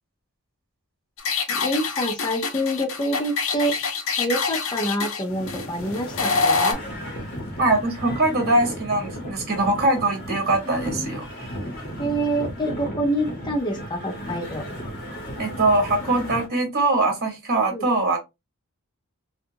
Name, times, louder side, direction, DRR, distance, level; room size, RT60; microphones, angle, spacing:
sound 1, 1.2-6.7, left 4 dB, 65° left, 0.6 m, -26 dB
voice 1, 1.5-3.7 4.2-6.8 10.7-11.1 12.0-14.8 17.7-17.9, equal, 20° left, 0.5 m, -27 dB
sound 2, 5.3-16.5, equal, 45° left, 1.0 m, -35 dB
voice 2, 7.6-11.3 15.4-18.2, right 2 dB, 45° right, 1.2 m, -22 dB
2.7 x 2.3 x 2.7 m
head